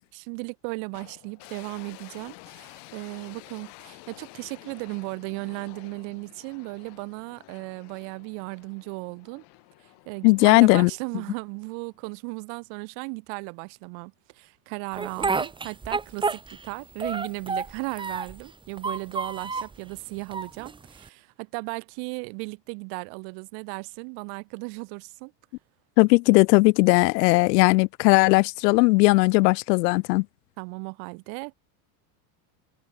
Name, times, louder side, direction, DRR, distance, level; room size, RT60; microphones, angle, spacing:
voice 1, 0.1-9.4 9.8-25.3 30.6-31.5, right 40 dB or more, 60° right, 4.4 m, -36 dB
sound 1, 0.9-12.2, left 28 dB, 55° left, 4.3 m, -50 dB
voice 2, 10.2-10.9 26.0-30.2, left 25 dB, 85° left, 0.7 m, -18 dB
Speech, 15.0-16.7 17.0-18.4 18.8-19.8 20.3-21.1, right 4 dB, 10° right, 1.2 m, -30 dB
supercardioid pair, 145°, 48 cm